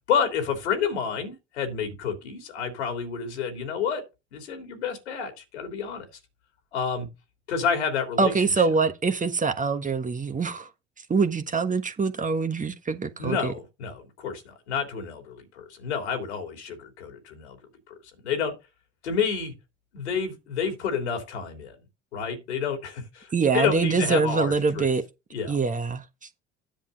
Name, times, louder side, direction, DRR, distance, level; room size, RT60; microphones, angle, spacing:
voice 1, 0.1-4.0 4.3-6.0 6.7-7.1 7.5-8.3 13.2-17.6 18.2-18.5 19.0-19.5 19.9-21.7 22.1-24.9 25.3-25.6, left 6 dB, 80° left, 3.2 m, -29 dB
voice 2, 8.2-10.7 11.1-13.5 23.3-25.0 25.5-26.0, right 4 dB, 25° right, 1.3 m, -24 dB
10.5 x 7.4 x 4.0 m
figure-of-eight pair, 60°, 33 cm